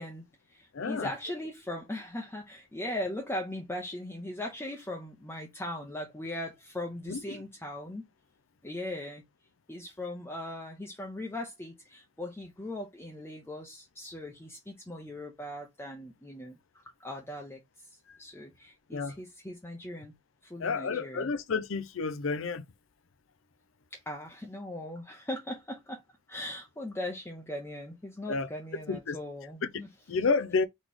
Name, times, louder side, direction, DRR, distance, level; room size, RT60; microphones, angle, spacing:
voice 1, 0.0-8.1 8.6-9.2 9.7-16.6 17.0-17.6 18.2-20.1 20.4-21.3 23.9-26.0 26.3-29.9, left 1 dB, 10° left, 0.7 m, -39 dB
voice 2, 0.7-1.1 7.1-7.4 18.9-19.2 20.6-22.6 28.3-28.5 28.9-29.2 29.6-29.7 30.1-30.7, left 4 dB, 70° left, 0.5 m, -30 dB
4.2 x 3.0 x 3.5 m
head